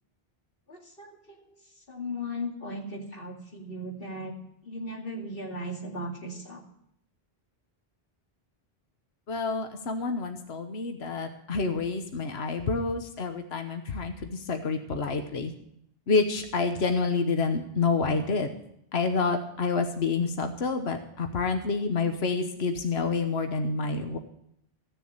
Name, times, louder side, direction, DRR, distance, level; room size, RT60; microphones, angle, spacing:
voice 1, 0.7-4.3 4.6-6.6, left 1 dB, 60° left, 0 dB, 2.7 m, -37 dB
voice 2, 9.3-15.5 16.1-18.5 18.9-24.2, left 4 dB, 75° left, 6 dB, 1.3 m, -28 dB
15.0 x 6.9 x 8.7 m, 0.73 s
omnidirectional pair, 1.1 m